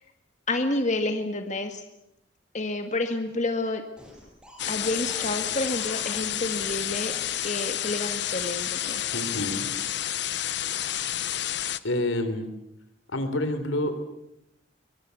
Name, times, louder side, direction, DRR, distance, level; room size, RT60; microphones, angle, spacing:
voice 1, 0.5-1.8 2.5-3.8 4.7-7.1 7.4-9.0, left 2 dB, 40° left, 6 dB, 1.9 m, -29 dB
sound 1, 4.0-7.3 8.3-10.0 10.6-11.0, left 1 dB, 5° right, 6.7 m, -49 dB
sound 2, 4.6-11.8, left 11 dB, 60° left, 0.9 m, -30 dB
voice 2, 9.1-9.7 11.8-12.5 13.1-14.0, left 1 dB, 85° left, 10 dB, 3.6 m, -28 dB
24.0 x 22.0 x 8.4 m, 0.83 s
head